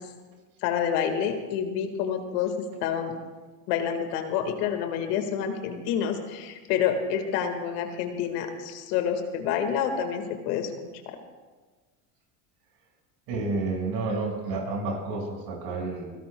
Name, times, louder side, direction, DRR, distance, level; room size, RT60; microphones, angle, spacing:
voice 1, 0.6-3.2 3.7-10.7 11.1-11.2, left 8 dB, 80° left, 6 dB, 1.9 m, -28 dB
voice 2, 13.3-16.1, right 3 dB, 70° right, 0 dB, 5.7 m, -30 dB
28.0 x 17.0 x 2.3 m, 1.3 s
supercardioid pair, 90°, 46 cm